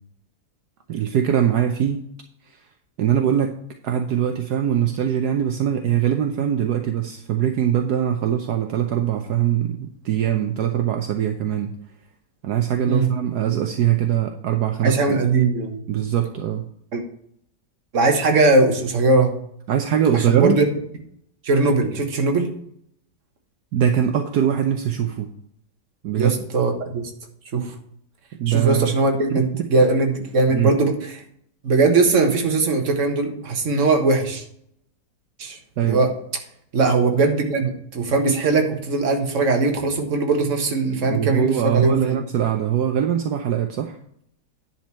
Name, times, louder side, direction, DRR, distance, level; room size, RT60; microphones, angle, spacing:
voice 1, 0.9-2.0 3.0-3.5 3.8-11.7 12.4-15.0 15.9-16.6 19.7-20.6 23.7-25.3 26.0-26.3 28.4-28.9 29.3-29.4 30.5-30.7 35.8-36.0 41.1-44.0, right 10 dB, 70° right, 4 dB, 1.3 m, -22 dB
voice 2, 14.8-15.8 16.9-17.0 17.9-19.3 20.1-20.7 21.4-22.5 26.2-27.1 27.5-27.7 28.5-31.2 31.6-34.4 35.4-36.1 36.7-42.2, right 3 dB, 45° right, 4 dB, 1.6 m, -20 dB
10.5 x 4.5 x 6.2 m, 0.69 s
omnidirectional pair, 1.9 m